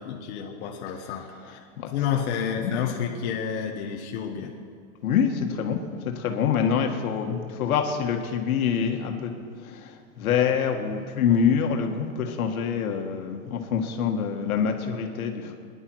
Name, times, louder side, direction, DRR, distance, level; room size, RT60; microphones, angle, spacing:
voice 1, 0.0-1.6 1.9-4.6, left 8 dB, 55° left, 1 dB, 1.3 m, -30 dB
voice 2, 1.4-1.9 2.6-3.0 5.0-5.8 6.0-9.3 9.6-15.6, left 7 dB, 85° left, 3 dB, 1.8 m, -26 dB
22.0 x 11.0 x 4.7 m, 2.1 s
supercardioid pair, 165°, 42 cm